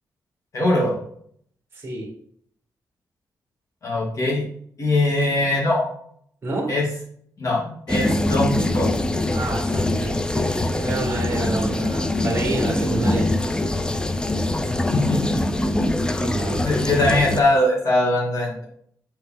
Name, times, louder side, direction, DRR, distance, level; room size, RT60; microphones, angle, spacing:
voice 1, 0.5-0.9 3.8-4.4 4.8-5.9 6.7-6.8 7.4-8.9 14.9-15.4 16.6-18.7, left 1 dB, 45° left, -3 dB, 2.4 m, -21 dB
voice 2, 1.7-2.1 6.4-6.7 9.3-13.8 16.1-16.7, right 2 dB, 35° right, 1 dB, 1.8 m, -29 dB
sound 1, 7.9-17.4, left 1 dB, 10° left, 0.4 m, -23 dB
6.4 x 4.3 x 3.7 m, 0.64 s
wide cardioid pair, 155°, 7 cm